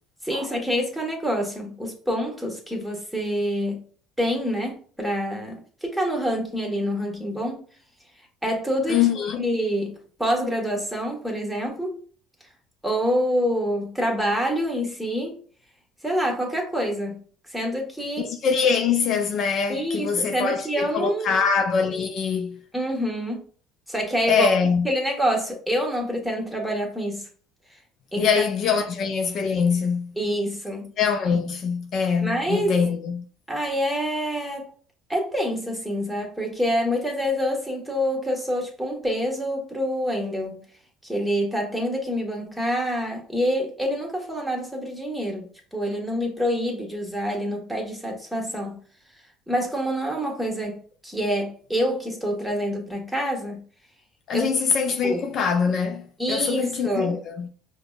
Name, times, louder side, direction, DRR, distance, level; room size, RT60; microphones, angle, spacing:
voice 1, 0.2-3.8 4.2-7.6 8.4-9.1 9.4-12.0 12.8-15.4 16.0-17.2 17.5-18.3 19.7-21.4 22.7-23.4 23.9-24.5 24.8-27.2 28.1-28.5 28.7-28.8 30.2-30.9 32.2-32.8 33.5-34.7 35.1-40.6 41.0-48.8 49.5-50.8 51.0-53.6 54.3-54.5 55.0-55.2 56.2-57.2, equal, ahead, 1.3 m, -26 dB
voice 2, 8.9-9.4 18.2-22.6 24.3-24.9 28.2-30.1 31.0-33.2 54.3-57.5, left 6 dB, 55° left, 0.4 m, -23 dB
5.0 x 2.1 x 2.4 m
hypercardioid pair, 75°, 0 cm